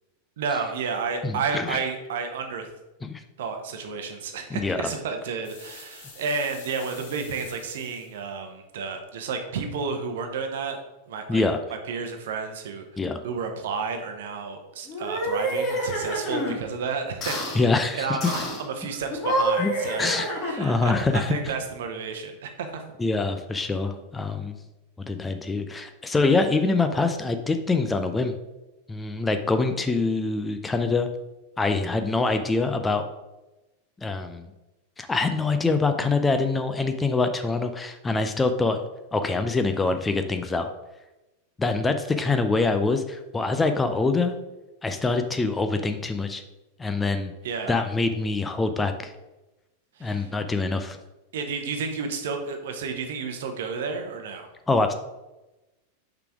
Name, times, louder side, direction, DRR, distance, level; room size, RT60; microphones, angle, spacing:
voice 1, 0.4-2.7 3.4-10.8 11.1-11.5 11.9-22.8 47.4-47.8 50.0-50.3 51.3-54.5, right 5 dB, 60° right, 5 dB, 0.9 m, -31 dB
voice 2, 1.2-1.8 3.0-3.2 4.5-4.9 11.3-11.6 13.0-13.2 17.6-18.2 19.6-19.7 20.0-20.3 20.6-21.3 23.0-24.6 25.0-28.3 28.9-31.1 31.6-33.0 34.0-34.5 35.0-38.8 39.1-40.7 41.6-44.4 44.8-46.4 46.8-47.3 47.7-49.1 50.0-51.0 54.7-54.9, left 3 dB, 10° left, 7 dB, 0.5 m, -25 dB
sound 1, 5.4-8.2, left 4 dB, 50° left, 1.5 m, -47 dB
sound 2, 14.9-16.6 17.2-17.6 18.2-18.6 19.1-20.8, equal, 30° left, 1.5 m, -28 dB
5.7 x 3.9 x 4.8 m, 1.0 s
figure-of-eight pair, 90°, 0 cm